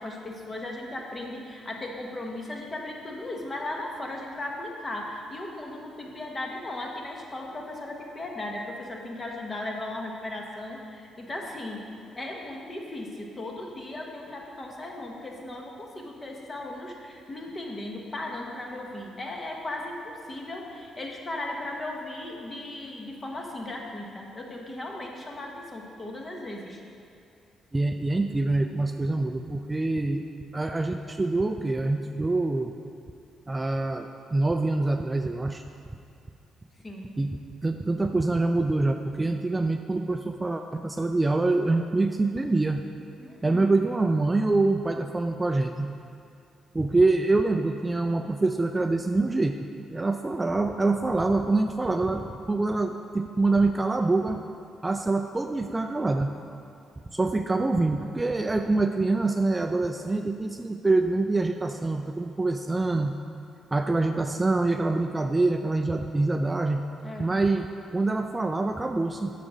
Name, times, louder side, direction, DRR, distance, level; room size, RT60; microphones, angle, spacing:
voice 1, 0.0-26.8 36.8-37.0 43.2-43.7 67.0-67.3, left 1 dB, 30° left, 0 dB, 1.2 m, -37 dB
voice 2, 27.7-30.2 30.5-32.7 33.5-35.6 37.2-42.8 43.4-45.9 46.7-49.6 49.9-54.4 54.8-56.3 57.1-63.1 63.7-66.8 67.2-69.3, right 2 dB, 20° right, 6 dB, 0.3 m, -25 dB
6.9 x 5.0 x 6.2 m, 2.5 s
cardioid pair, 90°, 0 cm